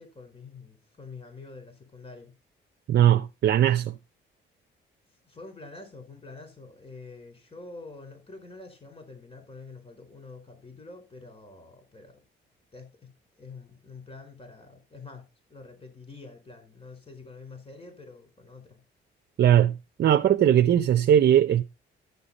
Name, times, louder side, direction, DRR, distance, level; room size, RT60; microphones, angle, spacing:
voice 1, 0.0-2.3 5.2-12.2 12.7-13.1 13.4-15.2 15.5-18.8, left 3 dB, 30° left, 4.7 m, -46 dB
voice 2, 2.9-3.9 19.4-19.7 20.0-21.6, right 10 dB, 60° right, 0.7 m, -19 dB
13.0 x 6.8 x 4.2 m
cardioid pair, 90°, 20 cm